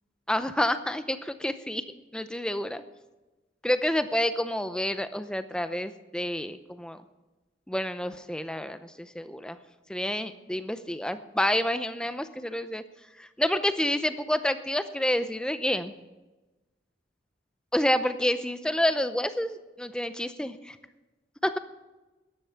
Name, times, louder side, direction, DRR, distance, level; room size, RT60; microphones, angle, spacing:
voice 1, 0.3-1.8 2.1-2.8 3.6-7.0 7.7-9.6 9.9-12.8 13.2-15.9 17.7-20.5 21.4-21.6, left 1 dB, 5° left, 11 dB, 0.6 m, -28 dB
14.0 x 10.5 x 5.8 m, 1.1 s
head